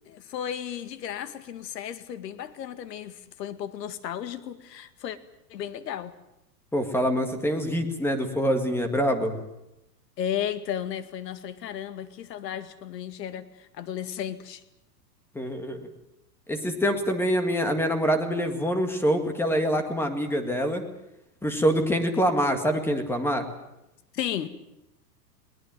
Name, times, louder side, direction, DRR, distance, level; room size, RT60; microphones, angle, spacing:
voice 1, 0.1-5.2 5.5-6.1 10.2-14.6 24.1-24.5, left 10 dB, 75° left, 2.1 m, -34 dB
voice 2, 6.7-9.4 15.4-15.8 16.5-20.8 21.4-23.4, equal, 5° left, 1.8 m, -25 dB
22.0 x 19.0 x 9.1 m
supercardioid pair, 155°, 49 cm